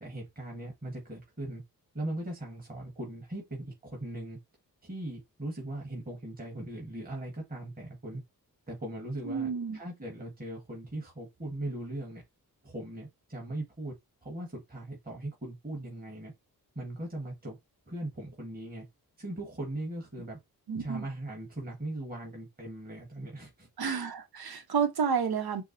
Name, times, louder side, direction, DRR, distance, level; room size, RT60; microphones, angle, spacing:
voice 1, 0.0-1.6 1.9-4.4 4.8-8.2 8.7-12.2 12.6-13.9 14.2-16.3 16.7-17.6 17.9-18.8 19.2-20.4 20.8-23.7, right 1 dB, 25° right, 1.5 m, -39 dB
voice 2, 9.2-9.8 20.7-21.0 23.8-25.6, right 6 dB, 75° right, 0.9 m, -30 dB
4.6 x 2.1 x 2.7 m
wide cardioid pair, 75°, 37 cm